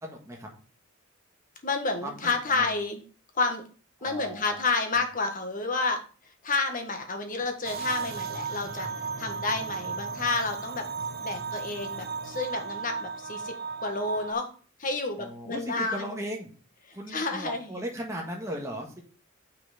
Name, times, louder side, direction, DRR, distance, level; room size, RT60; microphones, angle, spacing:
voice 1, 0.0-0.5 2.0-2.8 4.0-4.6 15.1-16.5 16.9-19.0, equal, 15° right, -1 dB, 1.7 m, -37 dB
voice 2, 1.6-3.0 3.3-3.6 4.0-6.0 6.4-8.9 9.2-10.9 11.2-13.5 13.8-14.5 14.8-16.1 16.9-17.7, left 3 dB, 40° left, 5 dB, 1.5 m, -30 dB
sound 1, 7.6-14.3, right 5 dB, 50° right, 0.7 m, -35 dB
6.9 x 6.1 x 5.1 m, 0.39 s
head